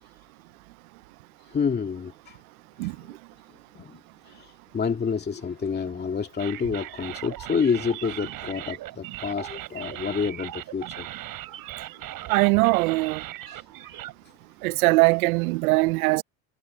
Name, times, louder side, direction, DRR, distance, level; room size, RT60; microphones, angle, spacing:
voice 1, 1.4-2.4 2.8-3.2 3.5-11.1 12.0-12.1 13.5-13.6, left 6 dB, 25° left, 2.3 m, -29 dB
sound 1, 6.4-14.1, right 15 dB, 50° right, 4.7 m, -38 dB
voice 2, 12.3-13.2 14.6-16.2, right 24 dB, 85° right, 0.7 m, -21 dB
supercardioid pair, 110°, 42 cm